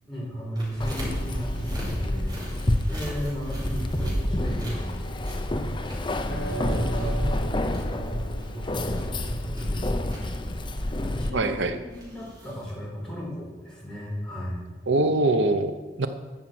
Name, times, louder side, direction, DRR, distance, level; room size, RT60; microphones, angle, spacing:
voice 1, 0.0-2.3 2.9-5.4 6.1-7.3 7.9-14.6, equal, 5° left, -6 dB, 5.0 m, -35 dB
sound 1, 0.6-12.7, equal, 20° right, 4.9 m, -37 dB
Keys jangling, 0.8-11.3, left 1 dB, 25° left, 0.8 m, -29 dB
sound 2, 3.9-9.6, right 1 dB, 80° left, 2.1 m, -37 dB
voice 2, 11.3-11.7 14.9-16.1, right 2 dB, 80° right, 9 dB, 0.8 m, -23 dB
12.5 x 7.4 x 7.8 m, 1.3 s
head